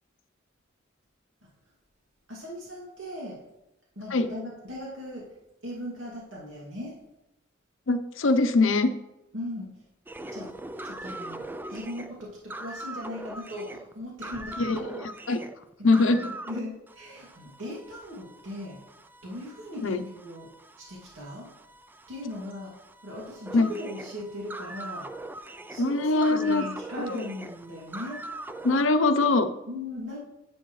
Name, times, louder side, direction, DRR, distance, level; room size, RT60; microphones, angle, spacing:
voice 1, 2.3-3.4 4.0-5.2 5.6-6.9 9.3-9.7 10.3-10.5 10.8-15.1 16.2-18.8 19.2-20.5 20.8-21.5 22.1-22.7 23.0-25.1 25.7-28.2 29.7-30.2, left 1 dB, 75° right, -5 dB, 2.4 m, -38 dB
voice 2, 7.9-8.9 14.6-15.4 15.8-16.2 19.8-20.0 23.5-23.7 25.8-26.7 27.1-27.2 28.6-29.5, left 3 dB, 85° left, 9 dB, 0.7 m, -23 dB
sound 1, 10.1-16.6 16.9-28.8, right 2 dB, 10° right, 0.4 m, -42 dB
10.5 x 7.8 x 3.2 m, 0.95 s
head